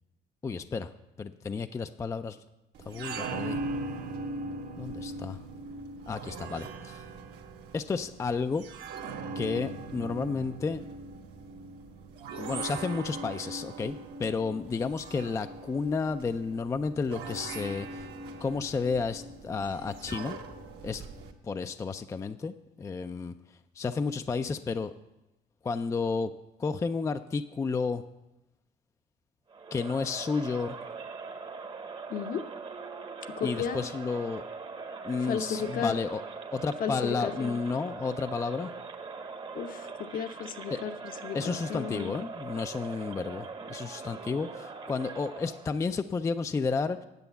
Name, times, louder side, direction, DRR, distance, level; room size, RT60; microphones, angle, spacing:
voice 1, 0.4-0.9 1.2-2.4 2.9-3.6 4.8-5.4 6.1-7.0 7.7-8.6 9.4-10.8 12.4-18.1 18.4-20.4 20.8-21.0 21.4-23.3 23.8-24.9 25.6-26.3 26.6-28.0 29.7-30.8 33.4-34.4 35.0-36.2 36.5-38.7 40.7-40.8 41.3-47.1, left 4 dB, 20° left, 9 dB, 0.3 m, -31 dB
sound 1, 2.7-21.3, right 3 dB, 75° right, 1.4 m, -40 dB
Crowd, 29.5-45.8, right 4 dB, 30° right, 0.9 m, -41 dB
voice 2, 32.1-32.4 33.4-33.8 35.3-35.9 36.8-37.6 39.5-42.1, left 7 dB, 55° left, 8 dB, 0.8 m, -34 dB
9.3 x 7.7 x 6.9 m, 0.98 s
cardioid pair, 110°, 17 cm